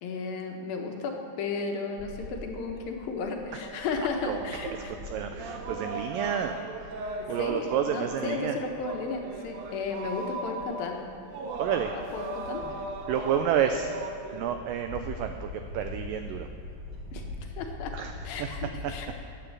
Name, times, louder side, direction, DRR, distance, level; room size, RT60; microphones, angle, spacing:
voice 1, 0.0-4.9 7.2-11.0 12.1-12.6 17.1-17.9 18.2-19.1, left 4 dB, 70° left, 3 dB, 2.6 m, -34 dB
Bird / Wind, 2.0-19.0, left 2 dB, 40° right, 2.2 m, -44 dB
sound 1, 3.6-14.4, right 2 dB, 70° right, 2.9 m, -38 dB
voice 2, 5.0-6.6 7.3-8.6 11.6-11.9 13.1-13.9 14.3-16.5 17.9-18.1 18.4-18.5 18.8-18.9, right 9 dB, 90° right, 6 dB, 1.9 m, -29 dB
11.5 x 9.0 x 7.2 m, 2.7 s
omnidirectional pair, 4.6 m